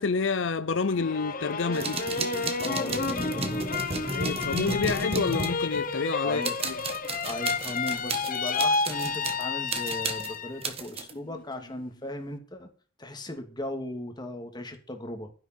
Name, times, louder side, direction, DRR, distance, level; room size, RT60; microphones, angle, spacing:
voice 1, 0.0-2.0 4.0-6.8, left 4 dB, 75° left, 0.6 m, -28 dB
sound 1, 0.9-10.7 11.1-11.8, left 4 dB, 45° left, 1.1 m, -31 dB
sound 2, 1.7-6.1 6.4-9.4 9.7-11.1, right 3 dB, 30° right, 1.6 m, -33 dB
voice 2, 2.6-3.7 6.2-6.6 7.2-12.7 13.0-15.3, left 1 dB, 20° left, 2.4 m, -37 dB
12.0 x 10.5 x 4.5 m
head